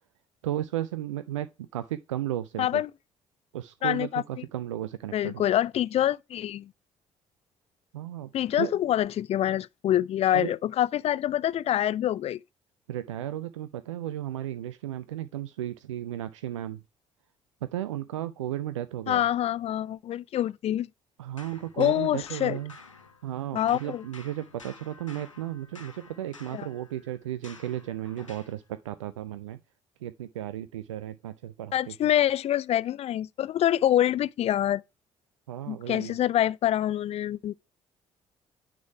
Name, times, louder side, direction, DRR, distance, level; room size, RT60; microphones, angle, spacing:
voice 1, 0.4-2.8 3.5-5.4 7.9-8.3 8.6-8.7 10.3-10.6 12.9-16.8 17.7-19.3 21.2-22.7 23.2-29.6 30.0-31.9 35.5-36.1, right 12 dB, 80° right, 0.4 m, -34 dB
voice 2, 2.6-2.9 3.8-4.2 5.1-6.7 8.3-12.4 19.1-20.9 21.8-22.6 23.5-24.0 26.5-26.7 31.7-34.8 35.7-37.6, left 12 dB, 40° left, 0.4 m, -26 dB
sound 1, 21.4-23.4 23.7-28.6, left 4 dB, 90° left, 0.8 m, -51 dB
9.3 x 3.7 x 4.7 m
figure-of-eight pair, 45°, 16 cm